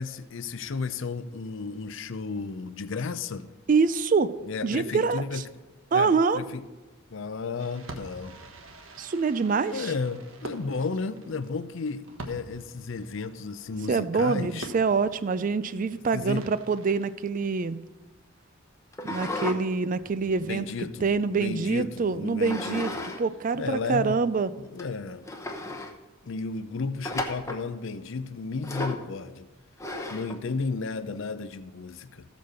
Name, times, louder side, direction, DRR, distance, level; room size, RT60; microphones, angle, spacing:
voice 1, 0.0-3.5 4.4-5.4 5.9-6.6 7.1-8.4 9.7-14.7 16.1-16.5 20.4-23.1 23.5-24.2 24.6-25.3 26.3-29.5 30.1-32.3, left 4 dB, 60° left, 12 dB, 0.5 m, -33 dB
voice 2, 3.7-4.3 4.6-5.4 5.9-6.4 9.0-9.9 13.9-17.8 19.0-20.7 21.0-22.9 23.2-24.5, right 4 dB, 40° right, 14 dB, 0.4 m, -25 dB
Fireworks, 7.6-17.8, right 1 dB, 65° right, 1.3 m, -46 dB
sound 1, 18.9-19.6 20.0-21.4 22.4-23.2 23.5-23.6 24.3-24.4 24.8-24.9 25.2-25.9 27.0-27.6 28.6-29.1 29.8-30.4, left 2 dB, 15° left, 0.8 m, -34 dB
14.0 x 5.2 x 6.6 m, 1.2 s
head